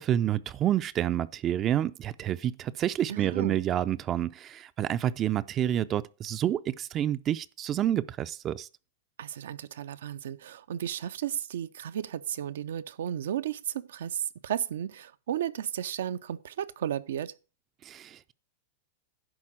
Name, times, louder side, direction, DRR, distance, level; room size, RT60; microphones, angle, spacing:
voice 1, 0.0-8.7 17.8-18.3, right 11 dB, 30° right, 0.4 m, -29 dB
voice 2, 3.1-3.6 9.2-17.3, right 10 dB, 80° right, 0.6 m, -34 dB
11.0 x 4.0 x 7.4 m
hypercardioid pair, 130°, 0 cm